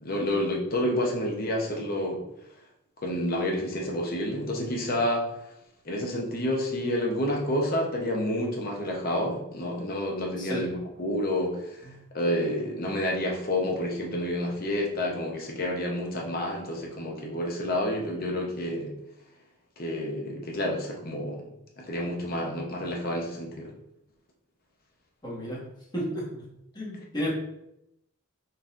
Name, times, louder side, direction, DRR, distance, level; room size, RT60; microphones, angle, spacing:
voice 1, 0.0-2.2 3.0-5.2 5.9-11.9 12.1-18.9 19.8-21.4 21.8-23.7, left 1 dB, 45° left, -1 dB, 0.7 m, -29 dB
voice 2, 10.4-10.7 11.8-11.9 25.2-25.6 25.9-26.5 26.7-27.3, equal, 20° left, -6 dB, 1.2 m, -32 dB
4.0 x 3.9 x 2.5 m, 0.81 s
head